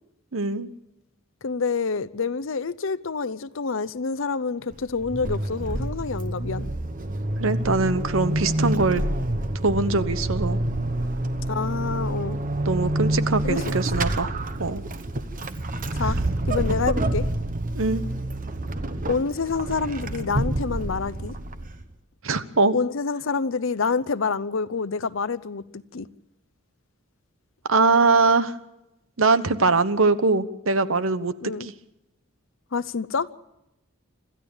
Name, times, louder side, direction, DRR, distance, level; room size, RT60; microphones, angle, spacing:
voice 1, 0.3-0.7 7.4-9.0 9.6-10.6 12.6-14.8 17.7-18.0 22.2-22.7 27.7-28.5 29.2-31.7, right 3 dB, 75° right, 1.1 m, -22 dB
voice 2, 1.4-6.7 11.5-12.4 13.4-13.6 13.9-14.0 15.9-16.2 16.5-17.3 19.1-21.4 22.7-26.1 31.4-31.7 32.7-33.3, left 4 dB, 65° left, 0.7 m, -27 dB
Vehicle / Accelerating revving vroom / Squeak, 4.7-21.9, right 1 dB, 40° right, 1.1 m, -27 dB
26.0 x 14.0 x 7.2 m
head